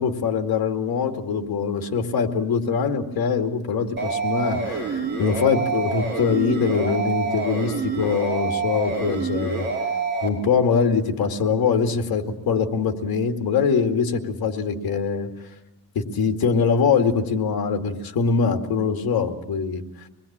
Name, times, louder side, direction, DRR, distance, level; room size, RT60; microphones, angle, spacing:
voice 1, 0.0-9.7 10.2-15.3 15.9-19.8, left 5 dB, 70° left, 5 dB, 2.4 m, -23 dB
sound 1, 4.0-10.3, right 4 dB, 30° right, 5.0 m, -27 dB
25.0 x 21.0 x 8.8 m, 0.94 s
cardioid pair, 155°, 37 cm